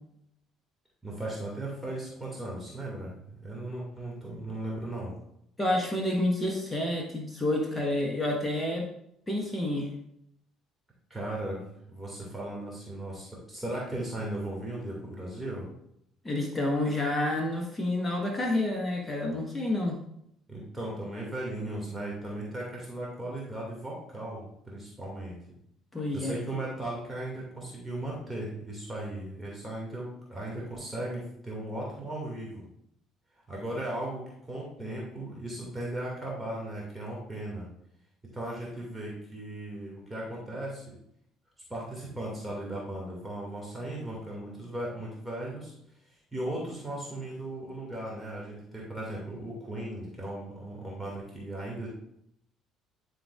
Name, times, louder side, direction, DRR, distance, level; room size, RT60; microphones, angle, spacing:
voice 1, 1.0-5.1 11.1-15.7 20.5-25.3 26.1-32.6 33.5-37.6 38.3-40.9 41.7-45.7 46.3-51.9, right 1 dB, 10° right, -4 dB, 2.2 m, -37 dB
voice 2, 5.6-8.9 9.3-9.9 16.2-20.0 25.9-26.3, left 1 dB, 15° left, 0 dB, 1.3 m, -29 dB
11.5 x 3.9 x 2.5 m, 0.74 s
figure-of-eight pair, 50°, 0 cm